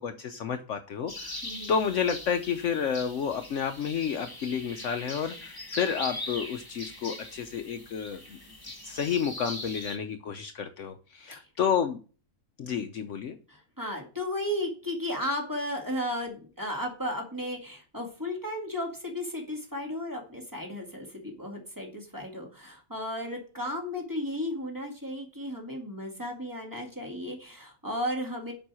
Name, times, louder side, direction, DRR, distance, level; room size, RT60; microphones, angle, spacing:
voice 1, 0.0-1.4 1.7-8.4 8.8-12.0 12.6-13.4, left 7 dB, 65° left, 8 dB, 1.0 m, -30 dB
sound 1, 1.1-10.0, left 1 dB, 15° left, 1.4 m, -41 dB
voice 2, 13.5-28.5, left 1 dB, 15° right, 0 dB, 2.1 m, -34 dB
7.2 x 5.4 x 6.2 m, 0.37 s
omnidirectional pair, 1.5 m